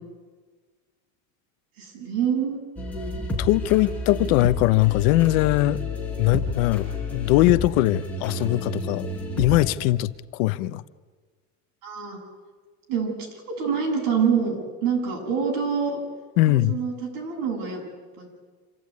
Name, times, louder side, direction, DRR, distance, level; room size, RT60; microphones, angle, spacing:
voice 1, 1.8-2.6 11.8-12.2 12.9-13.1 13.5-16.0 16.5-17.8 18.2-18.3, right 6 dB, 65° right, 0 dB, 7.9 m, -26 dB
sound 1, 2.8-9.7, left 2 dB, 5° left, 4.9 m, -30 dB
voice 2, 3.4-5.8 6.2-9.1 9.4-10.8 16.4-16.8, left 16 dB, 75° left, 15 dB, 0.9 m, -21 dB
26.5 x 14.0 x 9.5 m, 1.5 s
cardioid pair, 155°, 41 cm